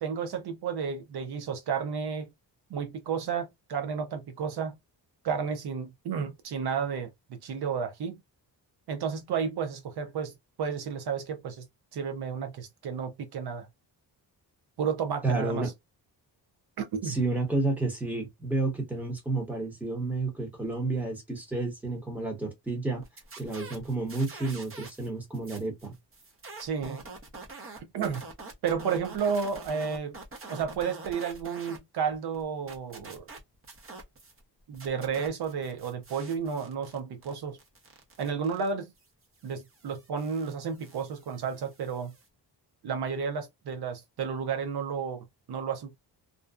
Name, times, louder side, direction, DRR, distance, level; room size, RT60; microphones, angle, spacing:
voice 1, 0.0-2.3 2.7-4.8 5.2-8.2 8.9-11.7 11.9-13.7 14.8-15.7 16.8-17.2 26.6-27.0 27.8-28.3 28.6-30.1 30.5-33.2 34.7-37.6 38.2-38.9 39.4-42.1 42.8-46.0, right 6 dB, 65° right, 0.6 m, -32 dB
voice 2, 15.2-15.7 17.0-23.0 23.4-25.9, right 2 dB, 5° right, 0.9 m, -30 dB
sound 1, 23.0-25.1 25.3-31.8 32.1-34.4 34.7-42.3, right 3 dB, 30° right, 0.7 m, -46 dB
2.5 x 2.1 x 2.3 m
wide cardioid pair, 155°, 42 cm